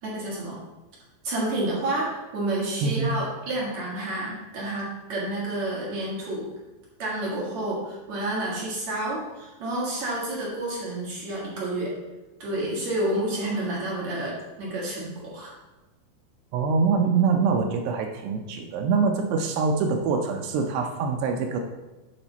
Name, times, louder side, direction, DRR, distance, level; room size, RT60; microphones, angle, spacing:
voice 1, 0.0-0.6 1.2-6.5 7.0-11.9 12.4-15.5, right 1 dB, 50° right, -5 dB, 2.4 m, -29 dB
voice 2, 2.8-3.1 16.5-21.6, right 5 dB, 80° right, 3 dB, 2.6 m, -24 dB
8.9 x 5.4 x 4.0 m, 1.1 s
omnidirectional pair, 5.1 m